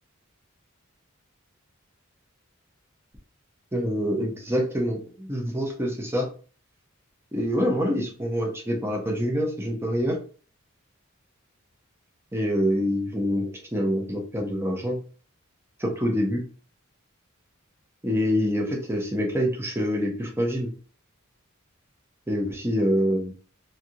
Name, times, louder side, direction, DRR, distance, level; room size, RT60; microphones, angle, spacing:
voice 1, 3.7-6.3 7.3-10.2 12.3-15.0 15.8-16.4 18.0-20.7 22.3-23.3, equal, 10° right, 1 dB, 0.7 m, -26 dB
3.2 x 2.7 x 2.4 m, 0.40 s
head